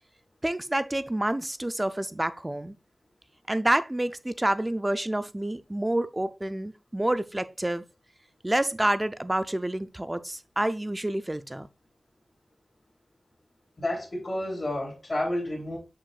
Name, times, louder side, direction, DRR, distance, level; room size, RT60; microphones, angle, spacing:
voice 1, 0.4-2.8 3.5-7.8 8.4-11.7, right 1 dB, 20° right, 0.5 m, -28 dB
voice 2, 13.8-15.8, left 1 dB, 40° left, 3.1 m, -30 dB
6.5 x 6.1 x 2.4 m
wide cardioid pair, 80°, 0 cm